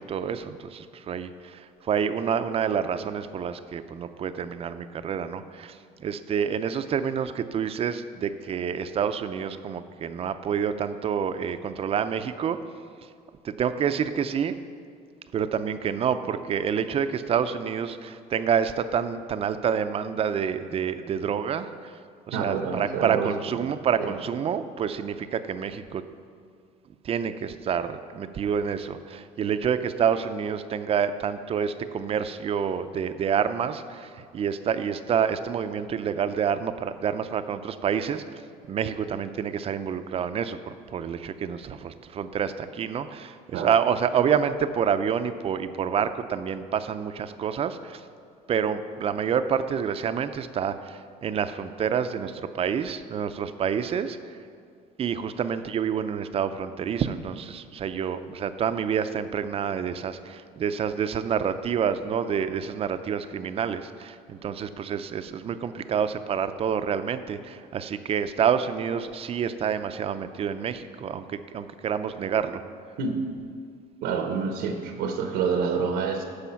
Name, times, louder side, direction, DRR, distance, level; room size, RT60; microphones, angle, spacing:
voice 1, 0.0-12.6 13.4-14.5 15.3-21.9 22.3-26.0 27.0-38.4 38.7-48.0 48.5-54.4 55.0-72.6, right 7 dB, 35° right, 11 dB, 0.5 m, -28 dB
voice 2, 22.3-23.3 24.0-24.1 43.5-43.7 73.0-73.2 74.0-76.2, right 5 dB, 85° right, 5 dB, 0.9 m, -27 dB
13.0 x 4.9 x 5.7 m, 2.2 s
cardioid pair, 120°, 17 cm